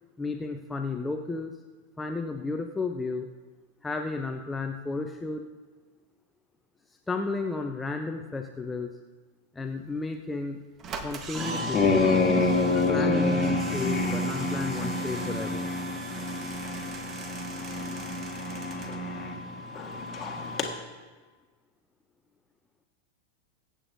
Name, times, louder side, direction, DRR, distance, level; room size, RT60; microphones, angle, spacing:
voice 1, 0.2-1.5 2.0-3.3 3.8-5.4 7.1-9.0 9.5-10.6 11.0-12.3 12.7-15.7, left 3 dB, 10° left, 5 dB, 0.7 m, -33 dB
sound 1, 10.2-10.3 10.8-19.0 19.3-19.4 19.6-19.7, right 5 dB, 30° right, 1.4 m, -42 dB
sound 2, 11.3-20.7, left 3 dB, 25° left, 1.7 m, -28 dB
22.0 x 8.8 x 2.7 m, 1.3 s
figure-of-eight pair, 90°, 0 cm